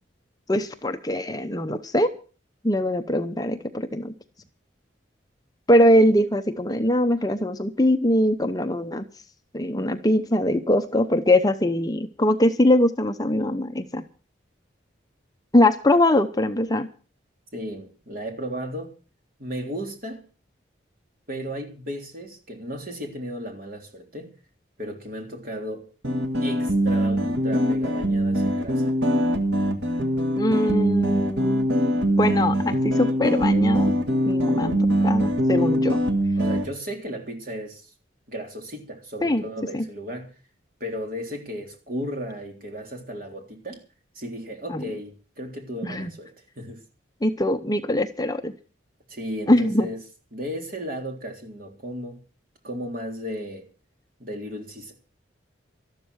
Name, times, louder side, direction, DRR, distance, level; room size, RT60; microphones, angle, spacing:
voice 1, 0.5-2.1 2.6-4.1 5.7-9.0 9.5-14.0 15.5-16.9 30.4-31.7 32.2-33.9 34.3-36.0 39.2-39.4 39.7-39.8 44.7-44.8 45.8-46.1 47.2-48.5 49.5-49.9, left 1 dB, 20° left, 0.8 m, -22 dB
voice 2, 17.5-18.9 19.4-20.2 21.3-24.3 24.8-25.9 26.4-28.9 36.4-37.9 38.3-40.3 40.8-43.8 44.2-46.8 49.1-50.0 50.3-52.2 52.6-53.7 54.2-54.9, equal, 45° right, 3.5 m, -35 dB
sound 1, 26.0-36.7, equal, 65° right, 1.7 m, -22 dB
13.0 x 12.0 x 6.3 m
head